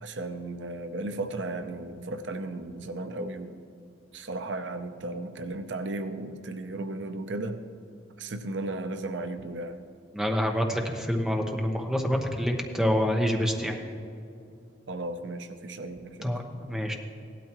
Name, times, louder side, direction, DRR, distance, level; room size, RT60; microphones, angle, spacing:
voice 1, 0.0-3.6 4.1-7.6 8.2-9.8 14.9-16.3, right 2 dB, 70° right, 8 dB, 0.7 m, -35 dB
voice 2, 10.1-13.8 16.2-16.9, equal, 5° right, 2 dB, 1.0 m, -27 dB
17.0 x 12.0 x 3.0 m, 2.5 s
head